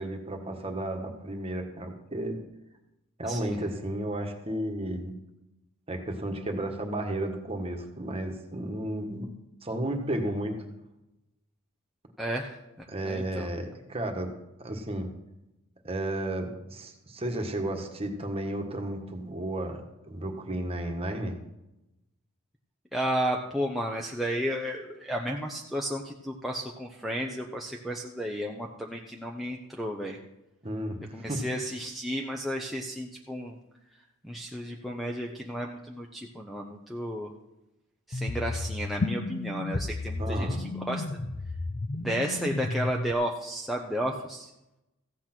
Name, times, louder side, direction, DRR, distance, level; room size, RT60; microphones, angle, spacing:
voice 1, 0.0-2.4 3.2-5.2 5.9-9.3 9.6-10.6 12.9-14.3 14.6-15.1 15.8-21.3 30.6-31.0 31.3-31.4 40.2-40.6, right 1 dB, 25° right, 4 dB, 1.5 m, -33 dB
voice 2, 3.2-3.6 12.2-12.6 13.0-13.5 22.9-30.2 31.1-33.6 34.2-37.3 38.1-41.0 42.0-44.5, equal, ahead, -1 dB, 0.7 m, -33 dB
sound 1, 38.1-43.1, left 2 dB, 35° left, 0.5 m, -32 dB
15.0 x 8.5 x 6.0 m, 0.93 s
head